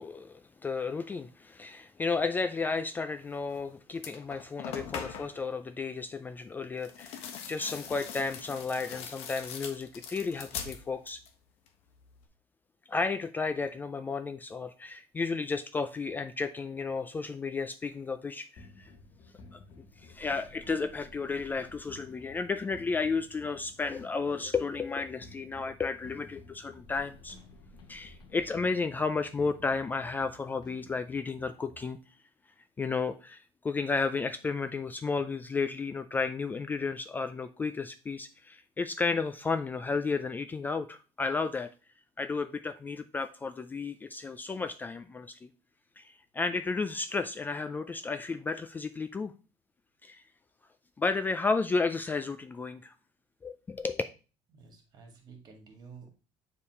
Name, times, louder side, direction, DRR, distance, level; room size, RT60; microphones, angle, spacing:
voice 1, 0.0-11.2 12.9-18.9 19.5-19.6 20.0-27.4 27.9-32.0 32.8-41.7 42.2-45.5 46.0-49.3 50.0-50.2 51.0-52.9 53.4-54.0, left 4 dB, 20° left, 0.3 m, -33 dB
sound 1, 3.5-3.6 3.9-5.4 6.8-11.4 11.7-12.3, left 7 dB, 75° left, 1.2 m, -42 dB
sound 2, 18.6-31.9, left 2 dB, 45° left, 1.2 m, -53 dB
voice 2, 54.5-56.1, right 5 dB, 40° right, 1.9 m, -52 dB
7.1 x 3.6 x 4.7 m
cardioid pair, 135°, 10 cm